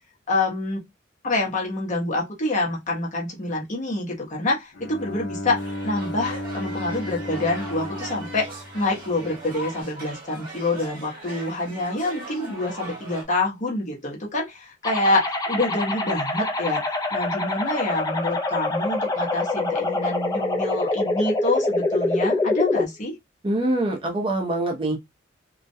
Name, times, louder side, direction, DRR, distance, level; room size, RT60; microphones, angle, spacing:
voice 1, 0.3-0.8 1.2-16.8 17.1-23.1, left 2 dB, 40° left, 0.8 m, -26 dB
Bowed string instrument, 4.7-9.6, left 1 dB, 75° left, 0.7 m, -34 dB
sound 1, 5.6-13.3, right 1 dB, 50° right, 1.0 m, -39 dB
sound 2, 14.8-22.8, left 2 dB, 20° left, 0.5 m, -25 dB
voice 2, 23.4-25.0, right 1 dB, 25° right, 0.6 m, -24 dB
2.3 x 2.1 x 2.6 m
head